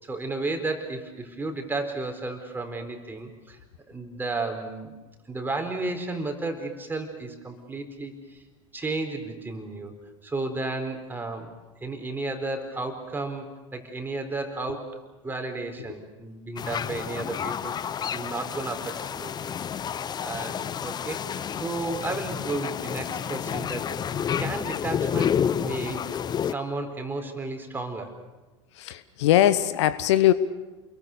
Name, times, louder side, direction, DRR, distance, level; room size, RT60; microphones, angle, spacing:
voice 1, 0.0-3.6 3.9-4.9 5.3-8.4 8.7-9.9 10.2-11.5 11.8-15.0 15.2-19.6 19.9-23.8 24.4-26.1 26.4-28.1, right 2 dB, 15° right, 5 dB, 4.4 m, -33 dB
sound 1, 16.6-26.5, left 8 dB, 25° left, 0.8 m, -30 dB
voice 2, 28.7-30.3, left 13 dB, 65° left, 15 dB, 1.0 m, -21 dB
29.5 x 22.5 x 6.8 m, 1.2 s
hypercardioid pair, 85°, 16 cm